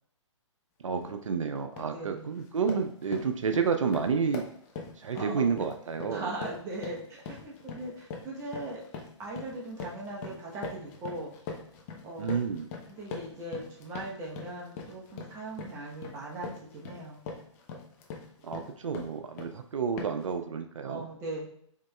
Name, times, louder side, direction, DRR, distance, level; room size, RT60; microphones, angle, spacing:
voice 1, 0.8-4.5 5.0-6.3 12.2-12.7 18.4-21.1, right 6 dB, 85° right, 7 dB, 0.4 m, -30 dB
sound 1, 1.0-1.2 1.6-2.0 2.3-19.6 20.0-20.3, left 4 dB, 30° left, 0.6 m, -43 dB
voice 2, 1.9-2.3 5.1-5.5 6.1-8.8 9.2-11.3 12.0-12.4 12.9-17.2 20.8-21.5, right 2 dB, 20° right, -3 dB, 0.8 m, -39 dB
4.5 x 3.1 x 2.2 m, 0.68 s
hypercardioid pair, 135°, 16 cm